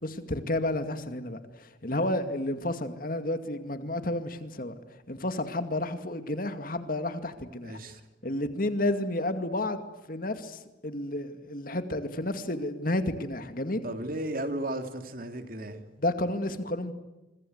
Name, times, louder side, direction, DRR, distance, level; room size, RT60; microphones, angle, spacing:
voice 1, 0.0-4.7 5.1-7.8 8.2-9.8 10.1-13.8 16.0-16.9, left 1 dB, 50° left, 9 dB, 2.3 m, -31 dB
voice 2, 7.6-8.0 13.8-15.8, right 1 dB, 50° right, 6 dB, 3.0 m, -34 dB
27.0 x 24.5 x 8.1 m, 1.0 s
head